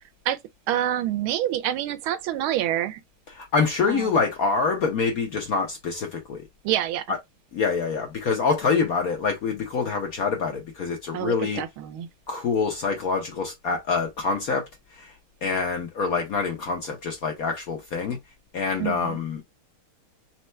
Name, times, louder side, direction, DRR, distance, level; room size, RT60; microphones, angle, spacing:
voice 1, 0.7-3.0 3.9-4.2 6.6-7.0 11.1-12.1 18.8-19.2, right 12 dB, 80° right, 1.5 m, -27 dB
voice 2, 3.3-6.4 7.1-7.2 7.5-11.6 12.3-14.7 14.9-15.1 15.4-18.2 18.5-19.4, left 5 dB, 60° left, 0.9 m, -26 dB
4.4 x 2.2 x 4.3 m
omnidirectional pair, 2.3 m